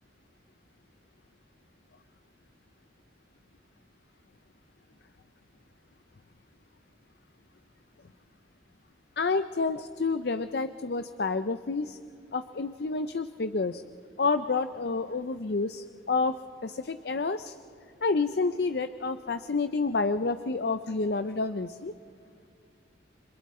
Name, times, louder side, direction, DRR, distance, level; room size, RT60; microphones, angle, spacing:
voice 1, 9.2-12.0 12.3-13.8 14.2-16.4 16.6-17.6 18.0-21.9, left 4 dB, 55° left, 11 dB, 0.5 m, -29 dB
29.5 x 26.5 x 4.3 m, 2.4 s
head